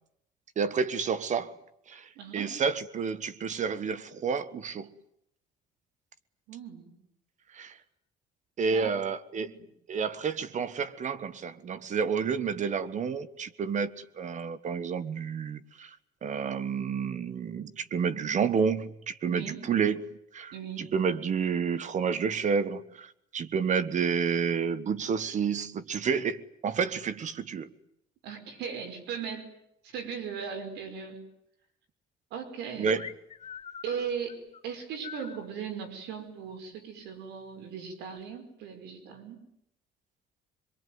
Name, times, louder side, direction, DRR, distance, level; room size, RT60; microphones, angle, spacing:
voice 1, 0.6-1.5 1.9-4.9 7.5-7.8 8.6-9.5 9.9-20.0 20.3-27.7 32.8-33.1, right 6 dB, 45° right, 1.3 m, -30 dB
voice 2, 2.2-2.6 6.5-6.9 8.7-8.9 9.4-9.7 19.3-19.6 20.5-20.9 28.2-29.5 29.8-31.2 32.3-32.9 33.8-39.4, right 7 dB, 85° right, 5.5 m, -38 dB
sound 1, 33.0-35.5, left 7 dB, 35° left, 1.7 m, -44 dB
24.5 x 23.0 x 9.5 m
cardioid pair, 110°, 17 cm